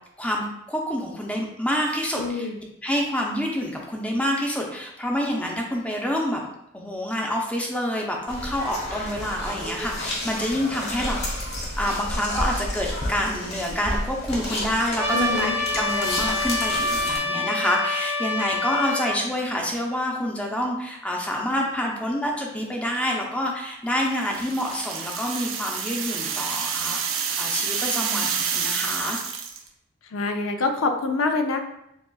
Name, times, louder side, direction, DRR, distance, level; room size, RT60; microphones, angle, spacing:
voice 1, 0.2-2.5 2.8-6.4 6.7-11.5 11.8-29.2, equal, 5° left, -1 dB, 0.6 m, -27 dB
voice 2, 2.2-2.6 15.1-15.6 30.1-31.6, left 3 dB, 80° left, 5 dB, 0.5 m, -25 dB
sound 1, 8.3-17.2, left 1 dB, 55° left, 1.1 m, -31 dB
Trumpet, 15.0-19.2, left 2 dB, 15° right, 1.0 m, -26 dB
sound 2, 24.1-29.7, right 6 dB, 80° right, 0.6 m, -28 dB
6.9 x 2.4 x 2.3 m, 0.80 s
head